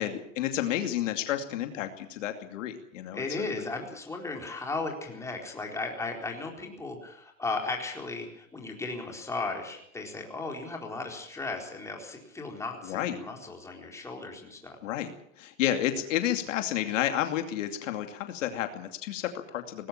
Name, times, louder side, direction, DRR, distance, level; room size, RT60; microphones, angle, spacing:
voice 1, 0.0-3.5 12.8-13.2 14.8-19.9, left 11 dB, 65° left, 6 dB, 2.6 m, -31 dB
voice 2, 3.1-14.8, left 3 dB, 5° left, 1 dB, 4.2 m, -36 dB
19.5 x 17.0 x 8.6 m, 0.69 s
supercardioid pair, 145°, 40 cm